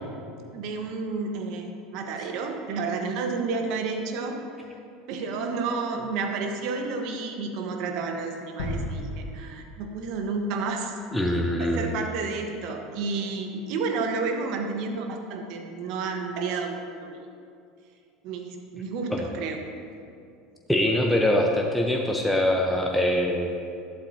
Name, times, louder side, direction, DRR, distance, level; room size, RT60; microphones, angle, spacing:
voice 1, 0.5-4.4 5.1-10.9 11.6-17.2 18.2-19.6, right 4 dB, 60° right, 4 dB, 1.3 m, -31 dB
sound 1, 8.6-10.5 10.9-11.0, left 1 dB, 80° left, 1.7 m, -35 dB
voice 2, 11.1-11.9 19.1-19.2 20.7-23.7, left 1 dB, ahead, 0 dB, 1.0 m, -23 dB
12.0 x 11.5 x 2.9 m, 2.5 s
hypercardioid pair, 80°, 0 cm